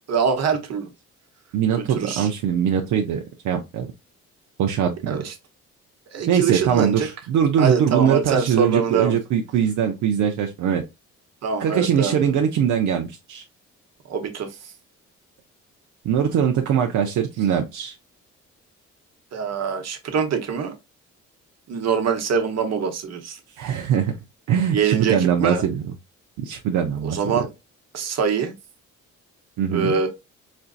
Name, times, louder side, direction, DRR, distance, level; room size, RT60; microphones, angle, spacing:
voice 1, 0.1-0.9 1.8-2.3 5.1-5.3 6.1-7.1 7.6-9.2 11.4-12.3 14.1-14.7 19.3-20.7 21.7-23.4 24.7-25.6 27.0-27.5 27.9-28.5 29.7-30.1, right 6 dB, 60° right, 1.0 m, -24 dB
voice 2, 1.5-3.9 4.6-5.2 6.3-10.8 11.6-13.4 16.0-17.9 23.6-24.1 24.5-25.8 26.4-27.2 29.6-29.9, right 8 dB, 80° right, 0.6 m, -22 dB
4.3 x 2.6 x 2.4 m
cardioid pair, 90°, 30 cm